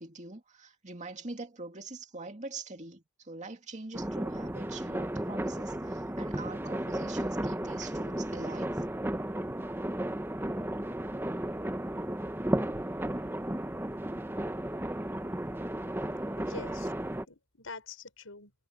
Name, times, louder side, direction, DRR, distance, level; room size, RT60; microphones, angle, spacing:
voice 1, 0.0-8.8, right 3 dB, 35° right, 2.4 m, -44 dB
sound 1, 3.9-17.2, right 1 dB, 10° right, 0.9 m, -34 dB
voice 2, 16.2-18.5, left 4 dB, 90° left, 5.5 m, -46 dB
head